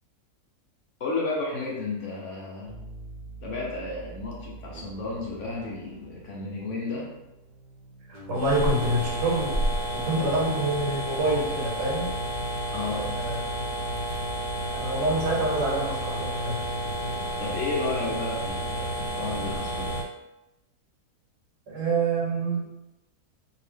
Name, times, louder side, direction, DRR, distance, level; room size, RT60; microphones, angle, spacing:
voice 1, 1.0-2.8 3.4-7.1 12.7-13.2 17.4-20.0, left 3 dB, 60° left, -3 dB, 0.9 m, -32 dB
sound 1, 2.6-18.4, right 3 dB, 50° right, 0.6 m, -46 dB
voice 2, 8.1-9.6 9.9-12.2 12.9-13.4 14.7-16.6 21.7-22.9, right 2 dB, 85° right, -3 dB, 1.5 m, -27 dB
sound 2, 8.3-20.0, right 1 dB, 90° left, 1.2 m, -31 dB
2.8 x 2.6 x 3.3 m, 0.93 s
omnidirectional pair, 1.7 m